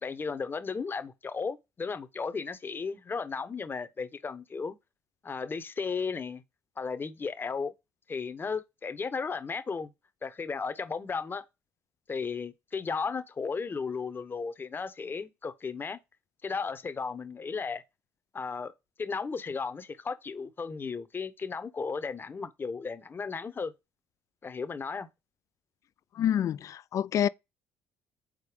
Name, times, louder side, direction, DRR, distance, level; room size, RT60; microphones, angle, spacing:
voice 1, 0.0-4.8 5.2-6.4 6.8-7.7 8.1-9.9 10.2-11.4 12.1-16.0 16.4-17.8 18.3-18.7 19.0-23.7 24.4-25.1, left 5 dB, 30° left, 0.9 m, -35 dB
voice 2, 26.2-27.3, left 10 dB, 50° left, 0.3 m, -27 dB
5.1 x 4.1 x 4.9 m
supercardioid pair, 75°, 7 cm